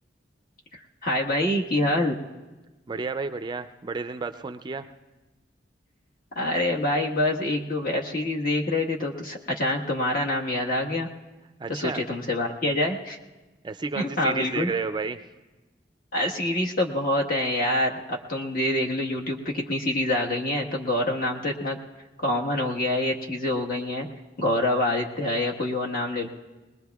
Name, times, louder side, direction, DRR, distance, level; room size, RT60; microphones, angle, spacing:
voice 1, 1.0-2.2 6.3-11.1 11.7-13.2 13.9-14.7 16.1-21.8 22.2-24.1 24.4-26.3, left 1 dB, 55° left, -1 dB, 1.4 m, -26 dB
voice 2, 2.9-4.9 11.6-12.0 13.6-15.2, right 4 dB, 25° right, 9 dB, 0.4 m, -31 dB
22.0 x 20.5 x 2.3 m, 1.2 s
head